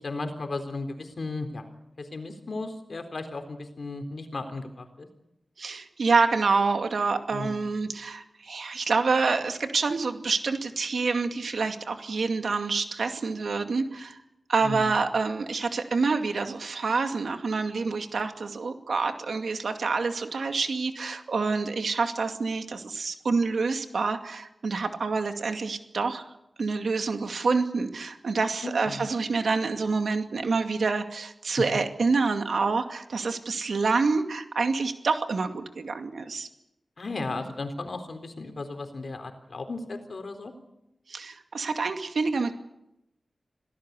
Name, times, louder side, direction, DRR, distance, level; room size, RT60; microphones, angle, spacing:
voice 1, 0.0-1.6 2.0-5.1 7.3-7.7 14.6-14.9 28.6-29.1 37.0-40.5, left 3 dB, 65° left, 7 dB, 3.9 m, -35 dB
voice 2, 5.6-14.2 14.5-26.3 26.6-36.5 41.1-42.5, right 4 dB, 85° right, 6 dB, 2.3 m, -27 dB
26.5 x 18.0 x 8.4 m, 0.85 s
wide cardioid pair, 80°, 0 cm